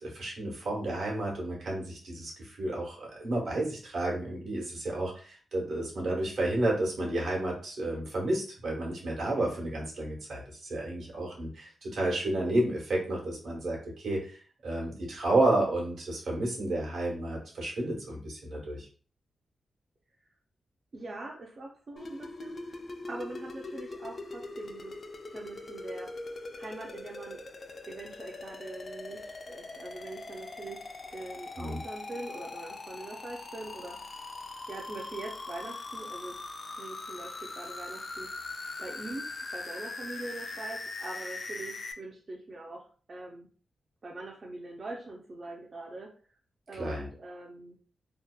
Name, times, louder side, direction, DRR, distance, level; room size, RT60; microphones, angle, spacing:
voice 1, 0.0-14.4 14.6-18.9 31.6-31.8 46.8-47.1, right 1 dB, 75° right, -2 dB, 1.0 m, -31 dB
voice 2, 20.9-22.8 23.1-24.9 25.3-26.1 26.6-27.4 27.9-30.8 31.1-34.2 34.7-36.5 36.8-38.3 38.8-39.3 39.5-43.5 44.0-46.1 46.7-47.8, right 2 dB, 40° right, -1 dB, 0.4 m, -43 dB
sound 1, 22.0-41.9, left 3 dB, 40° left, 0.3 m, -41 dB
2.7 x 2.1 x 2.3 m, 0.41 s
wide cardioid pair, 115°, 0 cm